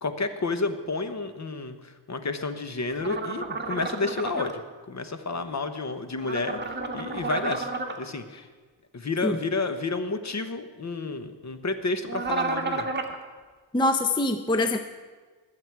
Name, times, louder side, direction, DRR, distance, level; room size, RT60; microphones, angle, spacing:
voice 1, 0.0-4.6 4.9-6.6 6.9-7.7 8.0-8.4 8.9-12.9, left 3 dB, 35° left, 9 dB, 1.1 m, -30 dB
sound 1, 3.0-4.5 6.2-8.0 12.1-13.2, right 3 dB, 25° right, 1.5 m, -31 dB
voice 2, 13.7-14.8, left 2 dB, 10° left, 8 dB, 0.6 m, -24 dB
20.0 x 7.9 x 4.7 m, 1.4 s
cardioid pair, 80°, 46 cm